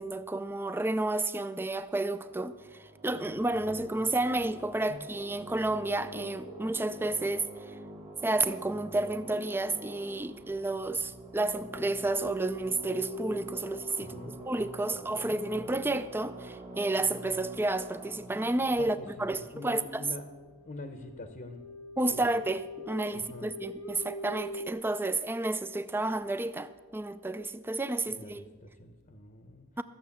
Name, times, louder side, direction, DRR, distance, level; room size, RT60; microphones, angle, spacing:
voice 1, 0.0-7.7 8.2-14.1 14.5-20.0 22.0-22.6 22.9-28.4 29.8-29.9, right 2 dB, 10° right, 0.4 m, -31 dB
sound 1, 2.1-20.2, right 2 dB, 30° right, 1.4 m, -47 dB
voice 2, 3.5-4.1 4.9-5.1 14.0-14.4 14.9-15.4 18.8-20.3 20.7-21.6 22.1-22.4 23.1-23.5 28.1-29.8, left 2 dB, 40° left, 0.8 m, -45 dB
sound 2, 5.9-8.3 11.1-16.7 17.6-17.7 18.0-18.1 18.8-18.9 19.0-19.2 19.5-24.7, left 1 dB, 75° left, 0.8 m, -45 dB
14.0 x 7.4 x 7.1 m
head